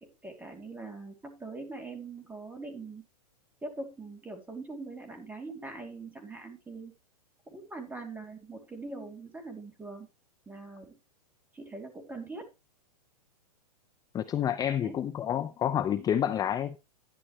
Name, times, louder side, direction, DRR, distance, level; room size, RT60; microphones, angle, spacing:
voice 1, 0.0-3.0 3.6-6.9 7.5-10.1 10.5-11.0 11.5-12.5 14.8-15.0, right 3 dB, 10° right, 3 dB, 3.1 m, -42 dB
voice 2, 14.1-16.8, left 9 dB, 20° left, 12 dB, 0.6 m, -29 dB
11.5 x 9.9 x 3.2 m, 0.26 s
hypercardioid pair, 115°, 20 cm